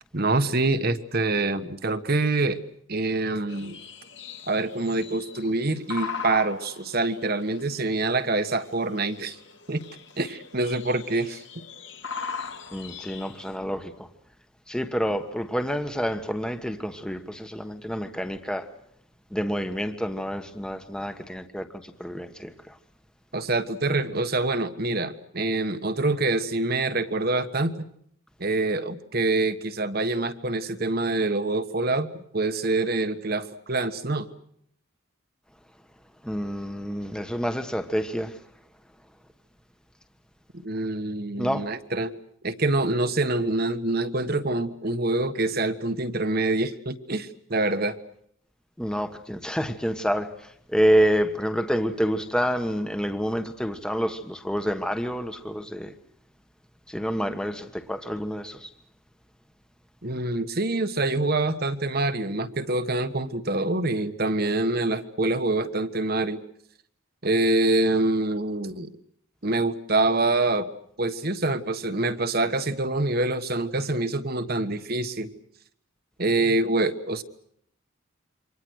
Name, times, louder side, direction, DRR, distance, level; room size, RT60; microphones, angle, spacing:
voice 1, 0.1-2.6 2.9-3.8 4.5-9.4 9.7-9.8 10.2-11.4 23.3-27.9 28.4-34.3 40.6-42.1 42.4-48.0 60.0-66.4 67.2-68.9 69.4-70.7 71.0-75.3 76.2-77.2, right 2 dB, 45° right, 1.4 m, -25 dB
sound 1, 3.5-13.6, left 5 dB, 55° left, 2.4 m, -40 dB
voice 2, 12.7-14.1 14.7-18.7 19.3-22.8 36.2-38.4 41.4-41.7 48.8-55.9 56.9-58.7, equal, 5° left, 1.3 m, -28 dB
28.0 x 25.0 x 6.4 m
head